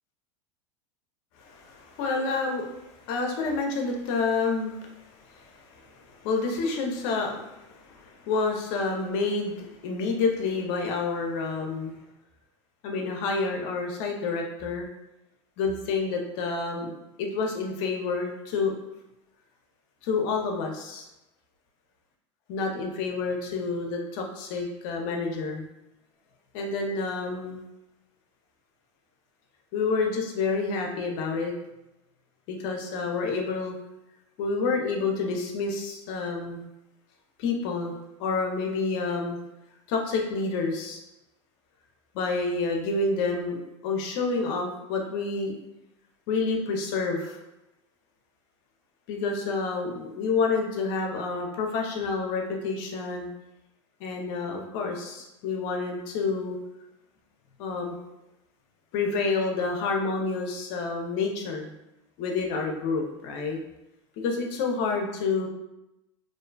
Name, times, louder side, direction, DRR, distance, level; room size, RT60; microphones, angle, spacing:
voice 1, 1.4-12.0 12.8-14.9 15.6-16.9 17.2-18.7 20.0-21.1 22.5-25.6 26.5-27.6 29.7-31.5 32.5-33.8 34.4-36.7 37.4-37.9 38.2-39.4 39.9-41.0 42.1-45.5 46.3-47.4 49.1-53.3 54.0-56.6 57.6-58.0 58.9-61.7 62.2-63.6 64.2-65.5, left 4 dB, 60° left, 2 dB, 0.5 m, -29 dB
2.5 x 2.2 x 2.2 m, 0.91 s
hypercardioid pair, 95°, 16 cm